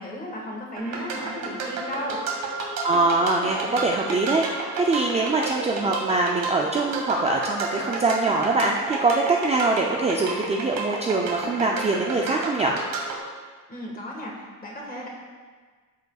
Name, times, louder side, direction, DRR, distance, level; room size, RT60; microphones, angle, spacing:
voice 1, 0.0-2.2 13.7-15.1, equal, 25° left, -2 dB, 1.5 m, -35 dB
sound 1, 0.8-13.2, right 3 dB, 85° right, 1.5 m, -31 dB
voice 2, 2.8-12.8, right 3 dB, 20° right, 0 dB, 0.4 m, -23 dB
13.0 x 5.3 x 2.4 m, 1.5 s
cardioid pair, 150°, 33 cm